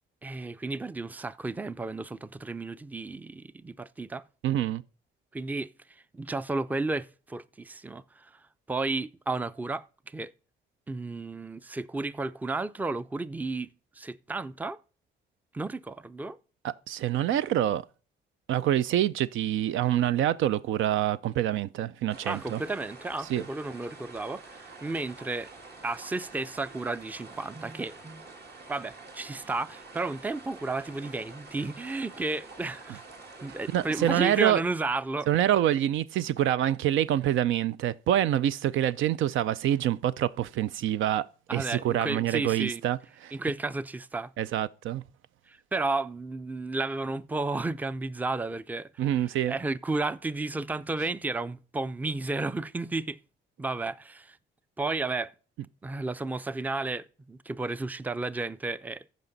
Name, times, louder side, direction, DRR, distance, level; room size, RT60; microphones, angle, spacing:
voice 1, 0.2-4.2 5.3-8.4 8.7-10.3 10.9-14.8 15.5-16.4 22.3-25.5 25.8-28.2 28.7-33.0 33.4-35.3 41.5-42.8 43.3-44.3 45.5-53.2 53.6-54.4 54.8-55.3 55.8-59.0, right 3 dB, 10° right, 0.4 m, -33 dB
voice 2, 4.4-4.8 16.6-17.8 18.5-22.6 23.3-23.4 33.7-34.6 35.3-41.3 41.5-43.3 44.4-45.0 49.0-49.5, right 12 dB, 80° right, 0.5 m, -26 dB
sound 1, 22.1-34.5, right 3 dB, 55° right, 2.2 m, -48 dB
14.5 x 5.2 x 4.0 m
cardioid pair, 90°, 20 cm